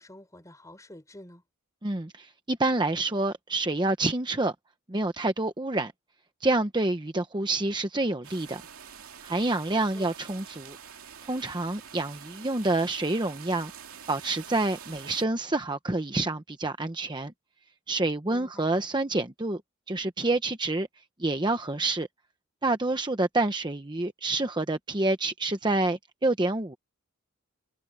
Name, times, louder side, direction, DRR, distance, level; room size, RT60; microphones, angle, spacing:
voice 1, 0.0-1.4 9.7-10.1 18.2-18.7, left 1 dB, 15° left, 4.9 m, -48 dB
voice 2, 1.8-4.5 4.9-5.9 6.4-8.6 9.2-10.8 11.3-13.7 14.1-17.3 17.9-19.6 19.9-20.9 21.2-22.1 22.6-26.8, right 2 dB, 20° right, 0.9 m, -28 dB
sound 1, 8.2-15.2, right 8 dB, 85° right, 2.5 m, -46 dB
head